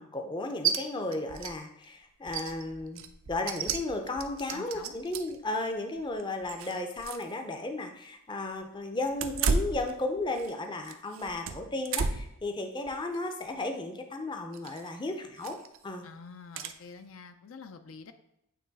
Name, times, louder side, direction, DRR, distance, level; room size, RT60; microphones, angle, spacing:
voice 1, 0.0-15.6 15.8-16.1, left 2 dB, 20° left, 5 dB, 0.5 m, -34 dB
sound 1, 0.6-0.8 1.1-1.5 1.8-1.9 2.3-5.4 6.0-7.3 7.6-7.7 9.1-10.5 10.8-12.4 12.9-13.2 14.5-14.9 15.4-15.8 16.6-16.7, right 5 dB, 65° right, 0.5 m, -33 dB
voice 2, 3.4-3.7 4.5-5.0 16.0-18.1, left 4 dB, 70° left, 8 dB, 0.5 m, -47 dB
8.5 x 3.1 x 4.0 m, 0.82 s
head